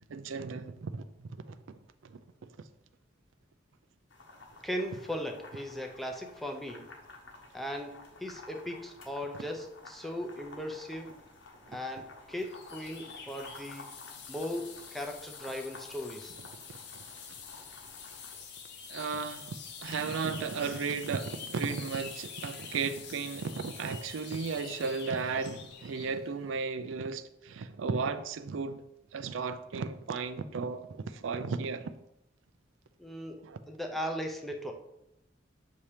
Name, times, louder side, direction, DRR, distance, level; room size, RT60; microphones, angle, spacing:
voice 1, 0.1-1.0 1.5-1.6 2.0-2.2 18.9-19.5 19.8-28.8 29.1-31.9 33.4-33.6, right 5 dB, 85° right, 0.4 m, -34 dB
sound 1, 4.1-18.4, left 2 dB, 80° left, 1.1 m, -52 dB
voice 2, 4.6-6.8 7.5-11.1 11.7-13.9 14.3-16.3 33.0-34.7, equal, ahead, 0.6 m, -38 dB
sound 2, 12.4-26.2, left 6 dB, 60° left, 0.7 m, -46 dB
7.0 x 2.8 x 4.9 m
head